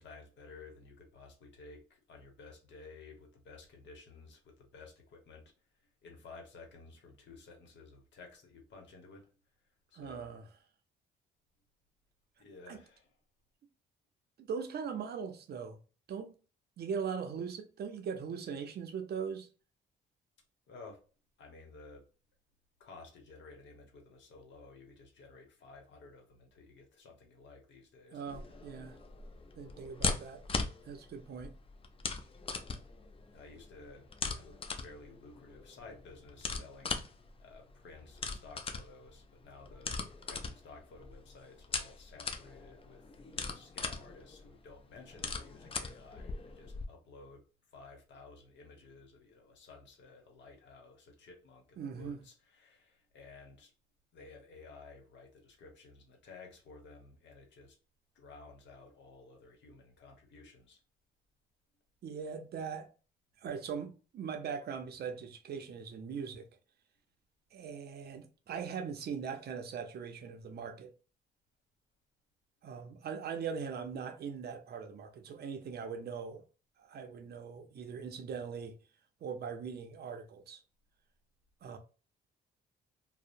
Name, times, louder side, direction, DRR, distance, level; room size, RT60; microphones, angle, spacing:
voice 1, 0.0-5.5 5.8-9.3 9.9-10.3 12.4-13.1 20.7-21.0 21.4-22.0 22.8-28.2 33.3-34.1 34.3-37.0 37.4-39.9 40.2-43.0 43.3-47.4 47.7-53.7 54.1-57.8 58.1-60.8, left 3 dB, 65° left, 1.0 m, -54 dB
voice 2, 9.9-10.5 12.7-12.8 14.4-15.8 16.1-16.3 16.8-19.5 28.1-29.0 29.6-30.4 30.8-31.5 51.8-52.2 62.0-62.9 63.4-66.5 67.5-70.9 72.6-76.4 76.8-78.8 79.2-80.6 81.6-81.8, right 6 dB, 55° right, 0.5 m, -40 dB
sound 1, 28.3-46.8, left 4 dB, 30° left, 0.4 m, -40 dB
2.7 x 2.0 x 2.5 m
cardioid pair, 90°, 20 cm